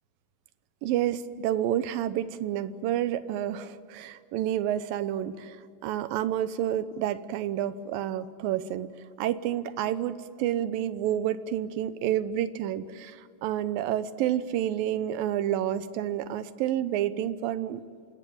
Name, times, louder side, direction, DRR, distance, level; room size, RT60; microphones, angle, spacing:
voice 1, 0.8-5.6 5.8-8.9 9.2-17.8, right 11 dB, 75° right, 13 dB, 2.5 m, -29 dB
27.5 x 20.0 x 8.8 m, 2.3 s
omnidirectional pair, 4.5 m